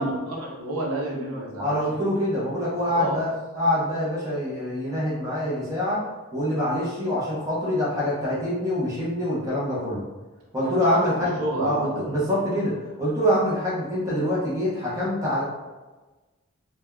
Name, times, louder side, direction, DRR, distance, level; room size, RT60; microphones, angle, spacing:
voice 1, 0.0-1.8 2.8-3.3 10.6-11.1 11.4-12.2, right 1 dB, 80° right, -2 dB, 0.7 m, -30 dB
voice 2, 1.6-3.3 3.6-6.0 6.3-10.0 10.5-15.4, left 1 dB, 15° right, -8 dB, 0.7 m, -25 dB
3.3 x 2.2 x 2.2 m, 1.2 s
head